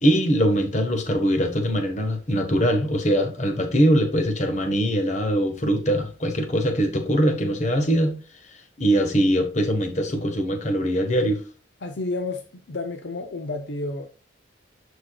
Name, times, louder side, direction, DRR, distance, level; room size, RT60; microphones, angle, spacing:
voice 1, 0.0-8.2 8.8-11.4, equal, 35° left, 1.2 m, -22 dB
voice 2, 11.8-14.1, left 2 dB, 60° left, 0.6 m, -31 dB
11.5 x 4.6 x 2.3 m
head